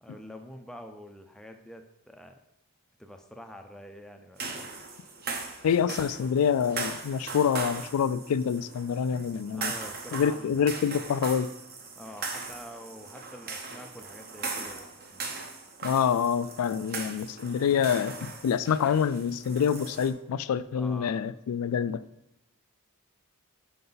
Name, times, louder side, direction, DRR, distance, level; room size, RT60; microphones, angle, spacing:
voice 1, 0.0-2.4 3.0-4.6 5.9-6.3 9.1-10.8 12.0-15.3 20.7-21.2, equal, ahead, 5 dB, 0.4 m, -46 dB
sound 1, 4.4-20.1, right 4 dB, 45° right, 0.8 m, -39 dB
voice 2, 5.6-9.7 10.1-11.5 15.8-22.0, left 7 dB, 80° left, 15 dB, 0.3 m, -26 dB
5.5 x 5.4 x 3.9 m, 0.81 s
head